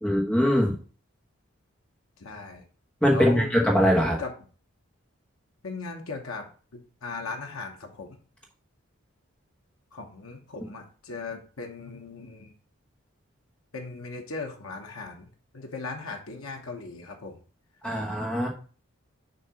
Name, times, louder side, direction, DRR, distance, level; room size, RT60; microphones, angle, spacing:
voice 1, 0.0-0.7 3.0-4.2 17.8-18.5, equal, 5° left, -2 dB, 1.3 m, -22 dB
voice 2, 2.2-2.6 3.1-3.5 4.2-4.3 5.6-6.5 6.7-8.2 9.9-12.5 13.7-15.3 15.5-17.4, left 3 dB, 75° left, 3 dB, 1.0 m, -37 dB
6.6 x 2.8 x 5.6 m, 0.39 s
head